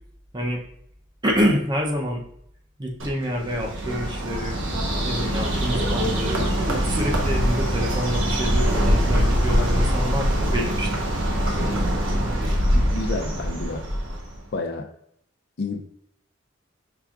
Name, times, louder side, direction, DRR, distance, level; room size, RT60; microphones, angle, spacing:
voice 1, 1.2-2.2 2.8-4.6 5.0-11.1, equal, 20° right, 1 dB, 0.6 m, -27 dB
Bird, 3.0-14.4, equal, 90° right, 1.0 m, -23 dB
voice 2, 12.7-13.8 14.5-14.9 15.6-15.8, left 3 dB, 55° left, 5 dB, 0.5 m, -29 dB
5.8 x 3.5 x 2.4 m, 0.71 s
head